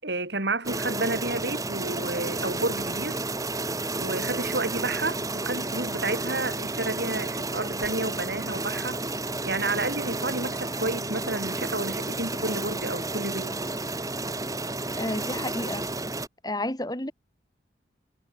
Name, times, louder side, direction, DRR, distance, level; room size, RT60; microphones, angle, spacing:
voice 1, 0.0-3.2 4.0-9.0 9.4-13.6, right 2 dB, 70° right, 6.6 m, -31 dB
sound 1, 0.6-16.3, right 2 dB, 20° right, 3.1 m, -31 dB
voice 2, 14.9-15.9 16.4-17.1, left 1 dB, 20° left, 2.4 m, -31 dB
head